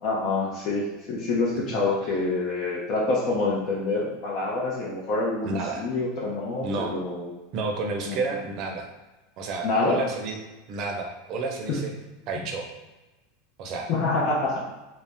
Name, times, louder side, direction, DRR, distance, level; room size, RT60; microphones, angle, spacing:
voice 1, 0.0-7.3 8.1-8.2 9.6-10.0 11.7-11.8 13.9-14.6, left 3 dB, 50° left, -4 dB, 0.6 m, -26 dB
voice 2, 5.4-5.9 6.6-6.9 7.5-8.9 9.4-10.4 10.7-11.9 12.3-12.7 13.6-13.9, right 3 dB, 50° right, 3 dB, 0.6 m, -30 dB
2.6 x 2.0 x 3.4 m, 1.1 s
supercardioid pair, 120°, 0 cm